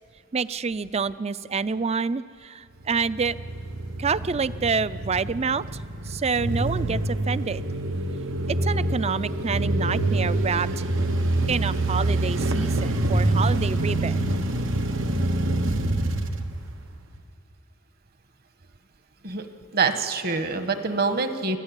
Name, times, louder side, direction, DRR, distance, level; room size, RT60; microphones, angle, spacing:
voice 1, 0.3-3.3 4.0-5.6 6.1-7.6 8.5-10.7 11.5-14.2, right 5 dB, 35° right, 16 dB, 0.5 m, -27 dB
sound 1, 2.8-17.2, right 2 dB, 90° right, 1.5 m, -26 dB
voice 2, 19.7-21.6, right 4 dB, 50° right, 8 dB, 1.5 m, -25 dB
29.0 x 14.5 x 9.0 m, 2.4 s
head